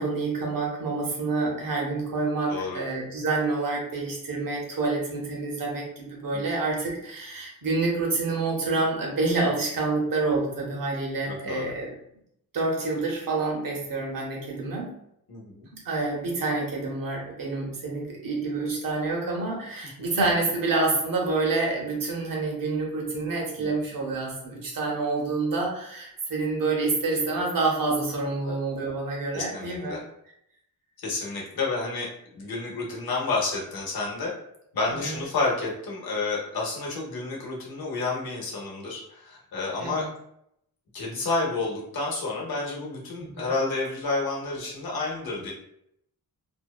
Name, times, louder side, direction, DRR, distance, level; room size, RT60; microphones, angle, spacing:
voice 1, 0.0-11.9 12.5-14.9 15.8-29.9 35.0-35.2 39.8-40.1 43.2-43.5, right 3 dB, 60° right, -2 dB, 0.9 m, -28 dB
voice 2, 2.5-2.8 6.3-6.4 11.3-11.7 15.3-15.7 23.6-23.7 28.4-28.5 29.3-30.0 31.0-34.3 34.7-40.1 40.9-45.5, left 3 dB, 75° left, -3 dB, 0.9 m, -30 dB
2.7 x 2.2 x 2.3 m, 0.75 s
wide cardioid pair, 125°, 37 cm